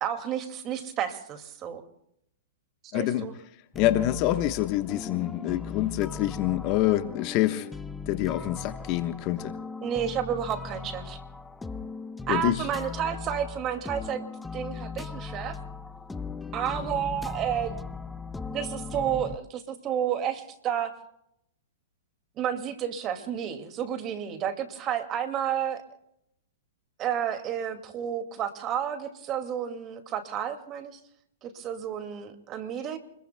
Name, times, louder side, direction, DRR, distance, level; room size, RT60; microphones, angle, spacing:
voice 1, 0.0-1.8 2.9-3.3 9.8-11.2 12.3-14.3 14.5-15.6 16.5-17.9 18.5-20.9 22.4-25.8 27.0-30.9 31.4-33.0, right 9 dB, 30° right, 7 dB, 2.2 m, -31 dB
voice 2, 2.9-3.3 3.7-7.7 8.1-9.6 12.3-12.6, left 14 dB, 40° left, 9 dB, 1.2 m, -26 dB
sound 1, 3.7-19.4, left 4 dB, 10° left, 0.6 m, -38 dB
29.0 x 21.5 x 2.2 m, 0.75 s
hypercardioid pair, 120°, 0 cm